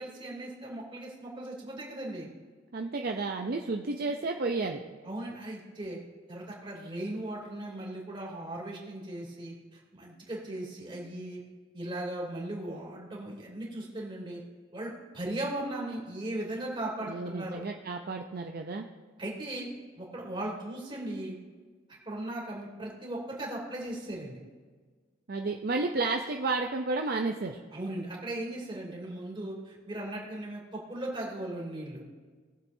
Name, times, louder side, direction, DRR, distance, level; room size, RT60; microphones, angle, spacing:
voice 1, 0.0-2.3 5.0-6.0 6.3-11.4 11.7-14.4 14.7-17.6 19.2-19.7 20.0-21.3 22.1-24.4 27.7-32.0, right 1 dB, 25° right, -3 dB, 2.9 m, -38 dB
voice 2, 2.7-5.0 17.1-18.9 25.3-27.6, right 3 dB, 50° right, 3 dB, 0.6 m, -32 dB
20.0 x 7.4 x 2.7 m, 1.5 s
head